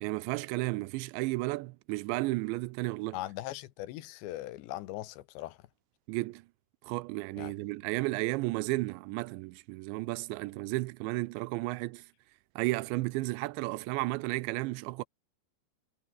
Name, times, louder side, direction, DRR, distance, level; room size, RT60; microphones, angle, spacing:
voice 1, 0.0-3.2 6.1-6.4 6.8-12.0 12.6-15.0, right 21 dB, 90° right, 2.9 m, -33 dB
voice 2, 3.1-5.6 7.4-7.5, left 15 dB, 80° left, 3.3 m, -40 dB
omnidirectional pair, 5.2 m